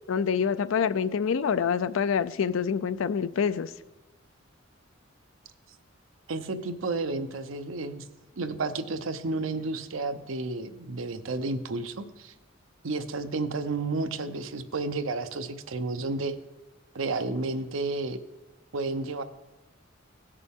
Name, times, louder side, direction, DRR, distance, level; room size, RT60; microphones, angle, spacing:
voice 1, 0.1-3.7, left 6 dB, 80° left, 15 dB, 0.4 m, -26 dB
voice 2, 6.3-8.0 8.4-12.3 12.8-16.4 16.9-18.2 18.7-19.2, right 3 dB, 85° right, 9 dB, 0.7 m, -31 dB
16.5 x 6.7 x 3.6 m, 1.1 s
head